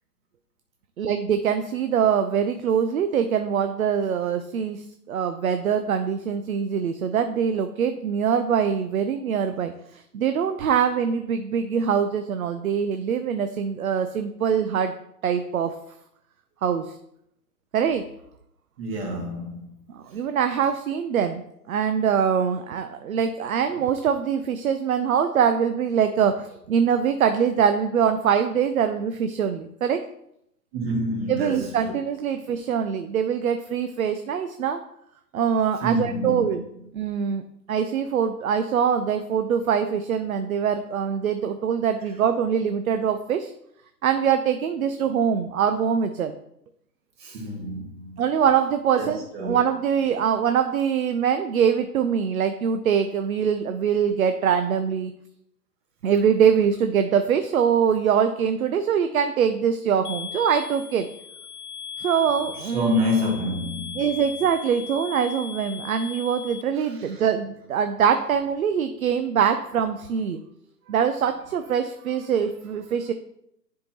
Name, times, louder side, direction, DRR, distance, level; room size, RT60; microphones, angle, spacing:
voice 1, 1.0-9.7 10.1-14.9 15.2-15.8 16.6-16.9 17.7-18.0 19.9-30.0 31.3-34.8 35.3-36.6 36.9-37.4 37.7-43.5 44.0-46.3 48.2-55.1 56.0-61.1 62.0-62.9 64.0-70.4 70.9-73.1, right 7 dB, 60° right, 0.6 m, -23 dB
voice 2, 18.8-19.7 30.7-31.9 35.8-36.6 47.2-48.2 49.0-49.6 62.6-64.0 66.8-67.3, left 1 dB, 35° right, 2.2 m, -28 dB
sound 1, 60.0-66.6, left 7 dB, 60° left, 0.8 m, -38 dB
10.0 x 4.5 x 2.9 m
hypercardioid pair, 140°, 49 cm